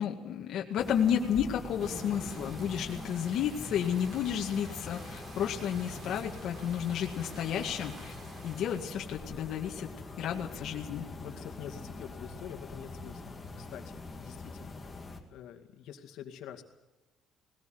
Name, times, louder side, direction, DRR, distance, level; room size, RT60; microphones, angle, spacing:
voice 1, 0.0-8.1 8.4-11.1, left 9 dB, 55° left, 0 dB, 2.0 m, -32 dB
sound 1, 0.8-15.2, left 3 dB, 15° left, 2.2 m, -44 dB
sound 2, 1.8-9.2, right 1 dB, 30° right, 4.5 m, -48 dB
voice 2, 11.2-14.8 15.3-16.6, left 9 dB, 70° left, 5 dB, 2.2 m, -46 dB
20.0 x 18.5 x 7.9 m, 1.1 s
cardioid pair, 170°, 0 cm